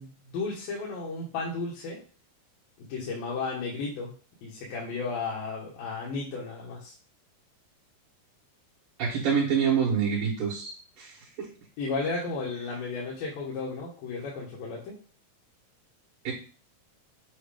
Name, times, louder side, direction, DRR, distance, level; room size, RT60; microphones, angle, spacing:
voice 1, 0.0-2.0 2.8-4.1 4.4-6.9 11.8-14.9, left 4 dB, 70° left, -5 dB, 3.0 m, -34 dB
voice 2, 9.0-10.7 11.0-11.1 11.4-11.5 16.2-16.3, right 7 dB, 65° right, -5 dB, 2.9 m, -26 dB
7.8 x 2.9 x 5.0 m, 0.38 s
omnidirectional pair, 4.2 m